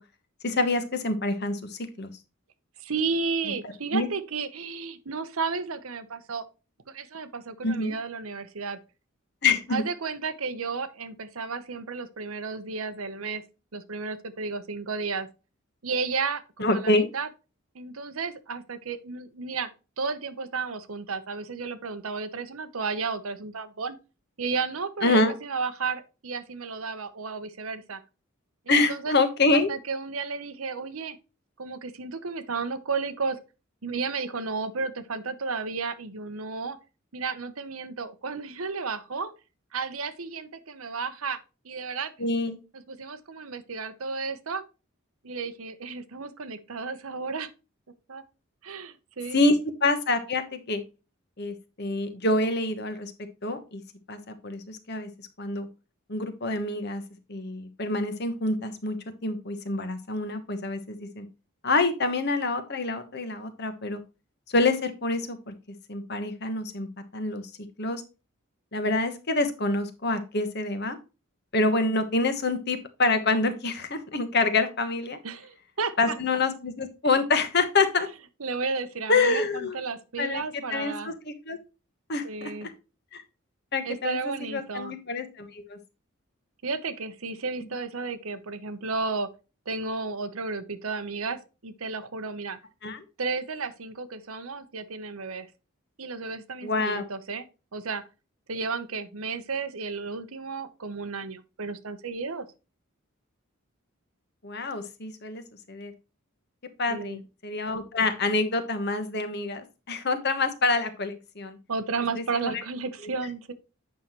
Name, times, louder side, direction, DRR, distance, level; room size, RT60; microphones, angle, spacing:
voice 1, 0.4-2.1 3.9-4.1 7.6-7.9 9.4-9.8 16.6-17.1 25.0-25.3 28.7-29.7 42.2-42.6 49.3-50.8 51.4-53.1 53.4-53.8 54.1-55.1 55.4-55.7 56.1-57.0 57.3-59.0 59.2-61.2 61.6-64.0 64.5-65.5 65.9-66.9 67.1-67.4 67.8-68.0 68.7-71.0 71.5-75.2 76.0-78.1 79.1-79.8 80.2-81.6 82.1-82.7 83.1-83.2 83.7-85.8 92.8-93.0 96.6-97.0 104.4-105.4 105.7-105.9 106.8-111.6 112.3-112.6, left 3 dB, 50° left, 1.3 m, -26 dB
voice 2, 2.8-6.4 6.9-8.8 9.7-13.4 13.7-15.3 15.8-17.3 17.7-19.7 20.0-24.0 24.4-28.0 28.7-29.1 29.5-31.2 31.6-33.4 33.8-36.8 37.1-39.3 39.7-41.4 41.6-42.1 42.7-44.6 45.2-47.5 48.1-48.2 48.6-49.4 75.2-76.2 78.4-81.1 82.2-82.7 83.8-84.9 86.6-89.3 89.7-92.6 93.2-95.5 96.0-97.5 97.7-98.0 98.5-102.5 106.9-107.2 111.7-113.5, right 4 dB, 90° right, 1.0 m, -33 dB
8.5 x 5.8 x 3.1 m
head